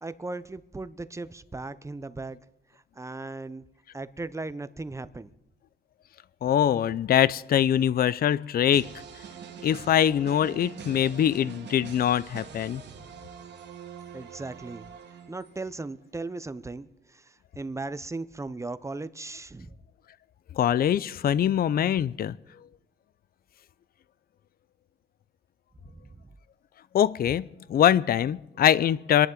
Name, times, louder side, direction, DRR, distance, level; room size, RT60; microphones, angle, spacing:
voice 1, 0.0-2.4 3.0-3.7 3.9-5.3 14.1-14.9 15.3-19.7 25.9-26.2, right 3 dB, 15° right, 0.7 m, -37 dB
voice 2, 6.4-8.9 9.6-12.8 20.5-22.4 26.9-29.3, left 10 dB, 50° left, 0.5 m, -23 dB
sound 1, 8.7-15.7, right 7 dB, 60° right, 1.6 m, -44 dB
27.0 x 11.0 x 3.9 m
cardioid pair, 90°, 20 cm